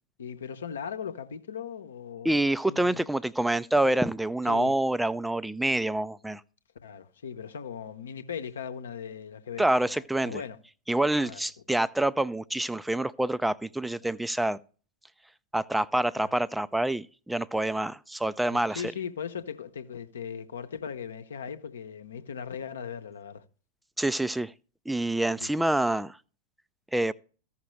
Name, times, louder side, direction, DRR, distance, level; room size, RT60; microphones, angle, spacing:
voice 1, 0.2-3.0 4.5-4.7 6.8-10.6 11.2-11.4 14.0-14.1 16.2-16.3 18.5-23.4 25.4-25.5, left 7 dB, 65° left, 0.9 m, -38 dB
voice 2, 2.2-6.4 9.6-10.4 10.9-14.6 15.5-18.8 24.0-24.5 24.9-26.2 26.9-27.1, right 1 dB, 5° right, 0.4 m, -27 dB
15.0 x 5.8 x 3.1 m
figure-of-eight pair, 90°, 0 cm